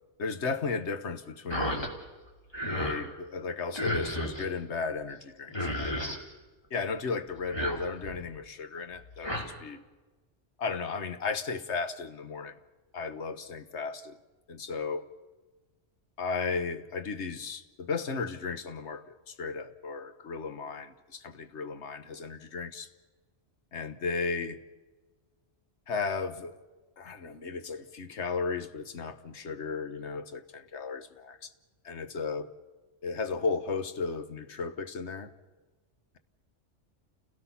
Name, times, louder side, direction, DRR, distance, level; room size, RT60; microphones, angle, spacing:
voice 1, 0.2-1.9 2.7-6.2 6.7-9.8 10.6-12.6 12.9-14.2 14.5-15.1 16.2-22.9 23.7-24.6 25.9-26.6 27.0-31.5 31.8-32.5 33.0-35.3, left 4 dB, 70° left, 1.4 m, -35 dB
sound 1, 1.5-1.9 2.3-3.0 3.7-4.5 5.2-5.3 5.5-6.2 7.3-8.2 9.0-9.4, equal, 20° left, 2.7 m, -33 dB
29.0 x 17.0 x 5.8 m
omnidirectional pair, 1.2 m